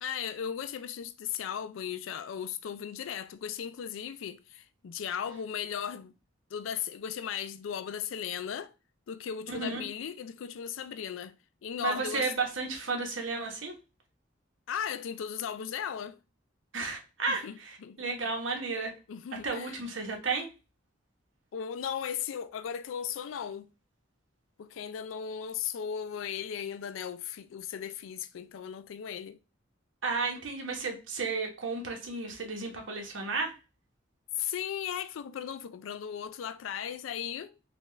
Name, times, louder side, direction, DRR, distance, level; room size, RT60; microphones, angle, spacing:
voice 1, 0.0-6.1 6.5-8.7 9.1-11.3 11.6-12.3 14.7-16.2 17.3-18.0 19.1-19.8 21.5-23.7 24.6-29.4 34.3-37.5, left 8 dB, 90° left, 0.3 m, -36 dB
voice 2, 9.5-9.8 11.8-13.7 16.7-18.9 19.4-20.5 30.0-33.5, right 4 dB, 85° right, 1.0 m, -33 dB
4.2 x 2.4 x 3.1 m
head